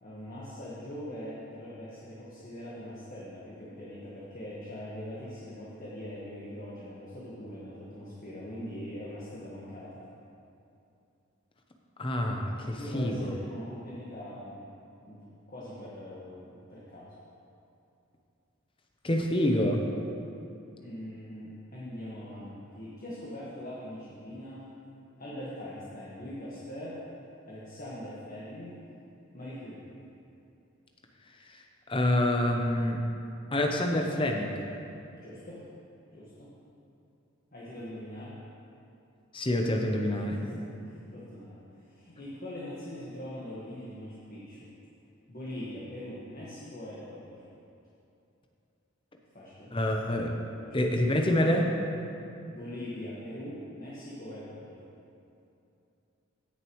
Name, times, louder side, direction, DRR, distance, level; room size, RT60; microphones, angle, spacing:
voice 1, 0.0-10.0 12.7-14.6 15.1-17.1 20.8-24.6 25.2-27.0 27.4-28.8 29.3-29.8 35.2-35.6 36.1-36.5 37.5-38.3 40.1-41.6 41.9-44.7 45.3-47.4 49.3-49.7 50.6-51.0 52.5-54.8, left 1 dB, 40° left, -8 dB, 1.5 m, -42 dB
voice 2, 12.0-13.3 19.0-19.8 31.5-31.6 31.9-33.0 33.5-34.7 39.3-40.4 49.7-50.3 50.7-51.7, left 1 dB, 25° left, 2 dB, 0.7 m, -27 dB
17.0 x 6.7 x 3.1 m, 2.7 s
head